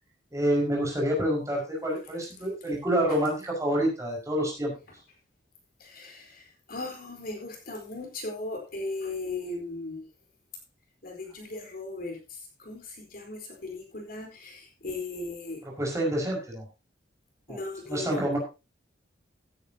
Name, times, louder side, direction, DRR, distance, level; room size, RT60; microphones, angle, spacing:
voice 1, 0.3-4.7 15.8-16.6 17.5-17.6 17.9-18.4, right 1 dB, 15° right, -2 dB, 5.5 m, -27 dB
voice 2, 5.8-10.1 11.0-15.6 17.5-18.2, left 2 dB, 55° left, 2 dB, 4.5 m, -37 dB
16.5 x 10.5 x 2.9 m, 0.29 s
head